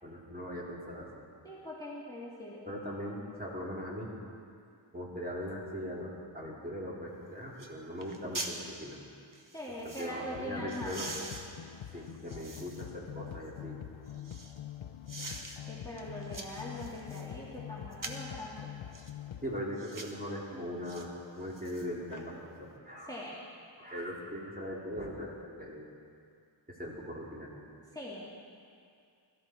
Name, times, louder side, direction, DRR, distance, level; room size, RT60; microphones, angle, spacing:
voice 1, 0.0-1.1 2.6-4.1 4.9-9.0 9.8-11.2 11.9-13.8 19.4-21.1 21.4-22.3 22.6-23.2 23.8-25.3 25.6-25.9 26.7-27.6, equal, 20° right, -5 dB, 3.5 m, -40 dB
voice 2, 1.4-2.7 9.5-11.2 15.7-18.6 23.1-23.3 27.9-28.3, left 1 dB, 5° left, -6 dB, 2.5 m, -42 dB
sound 1, 7.1-7.2 7.6-7.7 8.0-8.6 9.3-10.1 10.7-13.0 13.4-14.6 15.1-15.6 16.0-17.3 17.9-18.3 18.9-19.1 19.8-20.2 20.8-21.1 21.4-22.2 22.6-22.7, right 2 dB, 40° right, 1.5 m, -44 dB
sound 2, 10.3-19.6, left 11 dB, 75° left, 0.6 m, -45 dB
21.0 x 13.5 x 4.5 m, 2.4 s
wide cardioid pair, 50°, 48 cm